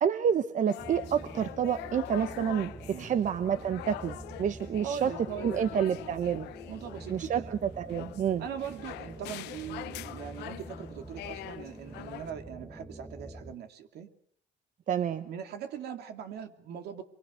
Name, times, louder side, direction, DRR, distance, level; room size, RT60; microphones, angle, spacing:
voice 1, 0.0-2.7 3.0-5.1 5.4-6.5 7.1-8.4 14.9-15.3, right 8 dB, 50° right, 11 dB, 1.0 m, -29 dB
sound 1, 0.7-12.3, left 15 dB, 85° left, 1.1 m, -44 dB
sound 2, 0.8-13.6, right 2 dB, 10° right, 1.3 m, -46 dB
voice 2, 4.8-6.0 6.7-7.6 8.4-14.1 15.2-17.0, right 8 dB, 70° right, 6 dB, 2.9 m, -41 dB
25.5 x 24.0 x 6.5 m, 0.62 s
cardioid pair, 110°, 17 cm